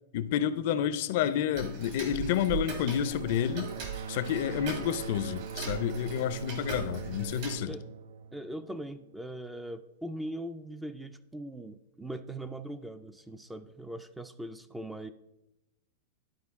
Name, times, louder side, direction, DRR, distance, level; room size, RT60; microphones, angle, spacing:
voice 1, 0.1-3.7 4.1-7.7, left 10 dB, 55° left, 14 dB, 0.5 m, -30 dB
Tick-tock, 1.6-7.6, right 5 dB, 55° right, 1.9 m, -40 dB
sound 1, 2.5-9.1, right 6 dB, 85° right, 0.4 m, -42 dB
voice 2, 8.3-15.1, right 1 dB, 5° right, 11 dB, 0.3 m, -40 dB
11.5 x 4.5 x 3.5 m, 0.93 s
supercardioid pair, 145°, 0 cm